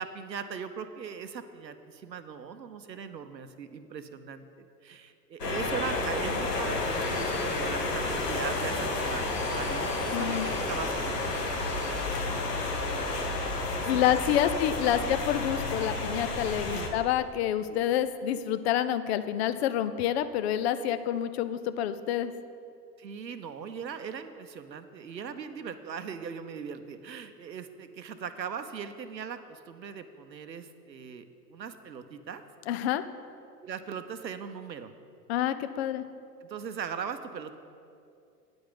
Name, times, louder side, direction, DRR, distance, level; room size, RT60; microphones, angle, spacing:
voice 1, 0.0-14.5 14.8-15.1 16.7-16.9 17.7-17.9 23.0-32.4 33.6-34.9 36.4-37.6, right 6 dB, 85° right, 10 dB, 0.8 m, -40 dB
sound 1, 5.4-16.9, left 2 dB, 70° left, 1.6 m, -31 dB
voice 2, 10.1-10.5 13.9-22.3 32.7-33.0 35.3-36.0, left 11 dB, 40° left, 12 dB, 0.6 m, -28 dB
9.5 x 5.2 x 7.9 m, 2.5 s
figure-of-eight pair, 95°, 50 cm